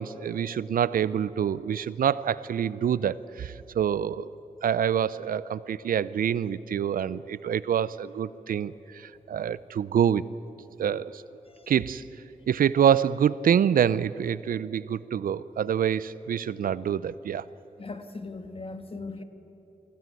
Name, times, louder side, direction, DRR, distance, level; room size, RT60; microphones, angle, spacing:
voice 1, 0.0-4.3 4.6-10.2 10.8-11.2 11.7-12.0 12.5-17.4, right 8 dB, 85° right, 18 dB, 0.5 m, -26 dB
voice 2, 17.8-19.2, left 3 dB, 40° left, 8 dB, 1.6 m, -38 dB
20.5 x 15.5 x 9.2 m, 3.0 s
cardioid pair, 55°, 14 cm